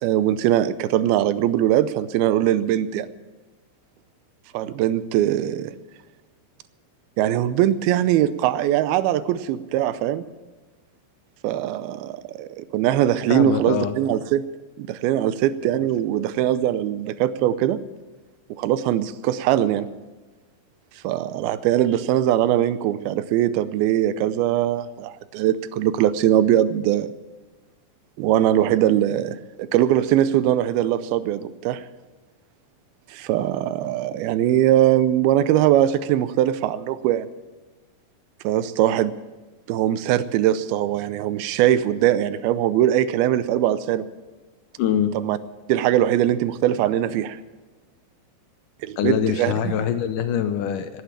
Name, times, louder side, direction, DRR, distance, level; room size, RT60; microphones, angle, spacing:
voice 1, 0.0-3.1 4.5-5.7 7.2-10.2 11.4-14.4 14.8-17.8 18.6-19.9 21.0-27.1 28.2-31.8 33.1-37.3 38.4-39.1 39.7-44.1 45.1-45.4 45.7-47.4 48.8-49.7, right 12 dB, 90° right, 15 dB, 2.6 m, -21 dB
voice 2, 13.3-13.9 15.6-15.9 44.8-45.1 49.0-51.0, left 9 dB, 75° left, 9 dB, 2.1 m, -24 dB
18.0 x 9.4 x 7.3 m, 1.2 s
omnidirectional pair, 4.3 m